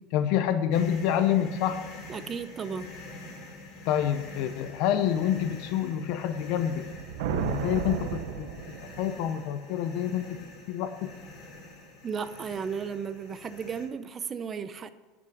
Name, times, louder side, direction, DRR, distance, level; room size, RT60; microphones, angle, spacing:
voice 1, 0.1-1.8 3.9-6.9 7.3-8.1 8.4-8.5 8.8-10.2 10.7-10.9, left 10 dB, 60° left, 0.7 m, -27 dB
sound 1, 0.7-13.9, left 2 dB, 40° left, 3.0 m, -46 dB
voice 2, 2.1-2.9 12.0-14.9, right 6 dB, 25° right, 0.6 m, -34 dB
sound 2, 6.8-9.3, right 8 dB, 80° right, 0.9 m, -33 dB
11.5 x 6.1 x 7.8 m
supercardioid pair, 140°, 0 cm